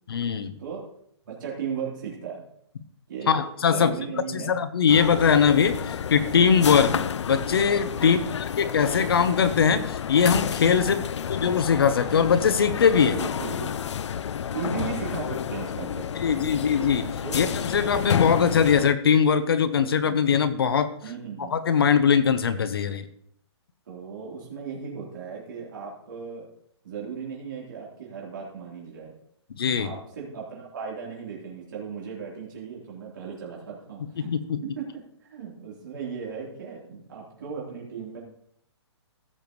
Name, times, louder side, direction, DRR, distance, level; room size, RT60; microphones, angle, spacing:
voice 1, 0.1-0.5 3.3-3.9 4.3-7.0 7.3-8.2 8.6-11.0 11.3-13.2 16.2-20.9 21.5-23.1 29.6-29.9 34.2-34.6, left 7 dB, 55° left, 11 dB, 0.8 m, -21 dB
voice 2, 1.2-2.4 3.1-4.6 5.1-5.2 7.9-8.4 10.7-11.1 13.1-13.7 14.5-16.5 17.2-17.4 20.0-20.2 21.0-21.6 23.9-26.5 26.8-29.1 29.7-34.3 34.6-34.8 35.2-38.2, right 6 dB, 45° right, -4 dB, 3.6 m, -36 dB
sound 1, 4.9-18.9, left 8 dB, 80° left, 0.4 m, -30 dB
15.5 x 7.0 x 3.1 m, 0.71 s
hypercardioid pair, 180°, 15 cm